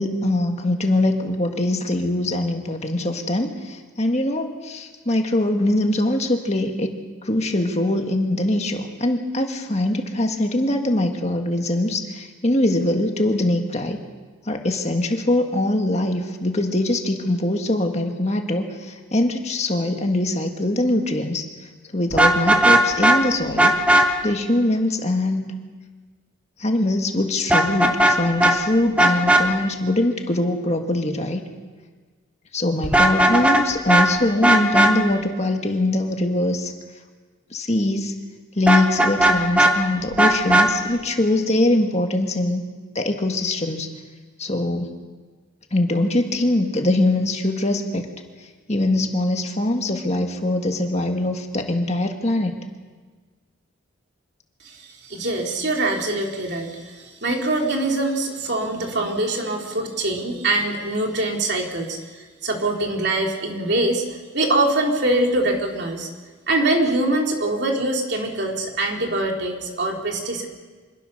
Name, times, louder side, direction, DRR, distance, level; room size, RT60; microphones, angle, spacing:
voice 1, 0.0-14.0 14.5-21.5 21.9-23.8 24.2-25.5 26.6-31.4 32.5-36.7 37.5-38.1 38.6-42.6 43.0-43.9 44.4-45.0 45.7-48.1 48.7-52.6, left 1 dB, 30° left, 3 dB, 1.8 m, -22 dB
Vehicle horn car horn honking, 22.1-23.2 23.6-24.0 27.5-28.1 28.4-28.5 29.0-29.4 32.8-33.6 33.9-34.1 34.4-34.9 38.7-39.7 40.2-40.7, right 1 dB, 5° right, 1.5 m, -15 dB
voice 2, 54.6-64.1 64.3-66.1 66.5-70.5, right 2 dB, 55° right, 1 dB, 3.1 m, -23 dB
26.0 x 21.5 x 6.7 m, 1.4 s
head